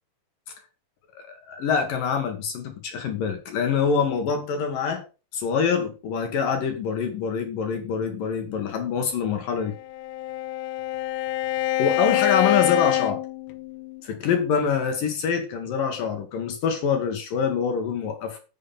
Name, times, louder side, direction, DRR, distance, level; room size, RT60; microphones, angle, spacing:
voice 1, 1.2-5.0 5.3-9.7 11.8-13.2 14.0-18.4, left 6 dB, 60° left, 2.8 m, -25 dB
Bowed string instrument, 9.6-14.0, left 14 dB, 85° left, 2.9 m, -26 dB
9.6 x 7.1 x 5.6 m
omnidirectional pair, 4.9 m